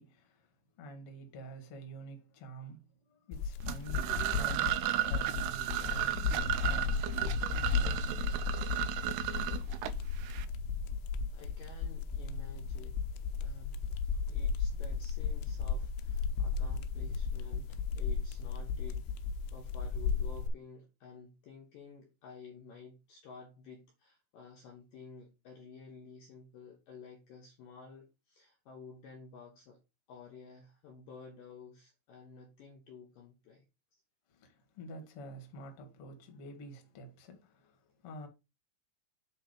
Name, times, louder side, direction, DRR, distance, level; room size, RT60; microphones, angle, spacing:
voice 1, 0.0-8.4 34.3-38.3, right 2 dB, 50° left, 1.8 m, -49 dB
sound 1, 3.3-20.5, left 5 dB, 85° left, 3.0 m, -35 dB
sound 2, 3.6-10.5, right 13 dB, 85° right, 2.3 m, -34 dB
voice 2, 11.3-13.0 13.4-13.9 14.3-19.1 19.5-29.8 30.1-33.7 33.9-34.0, left 5 dB, 70° left, 2.2 m, -52 dB
8.1 x 3.5 x 5.1 m
omnidirectional pair, 5.1 m